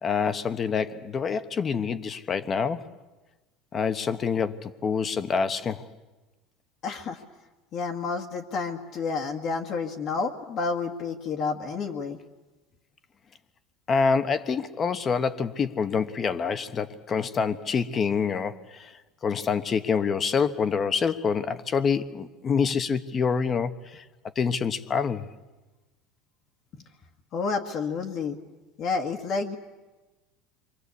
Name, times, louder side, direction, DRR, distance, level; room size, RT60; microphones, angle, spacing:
voice 1, 0.0-2.9 3.7-5.9 13.9-18.9 19.2-24.0 24.4-25.3, left 6 dB, 30° left, 1.1 m, -26 dB
voice 2, 6.8-7.2 7.7-12.2 27.3-28.4 28.8-29.6, left 4 dB, 45° left, 1.8 m, -30 dB
28.5 x 24.0 x 8.4 m
supercardioid pair, 130°, 0 cm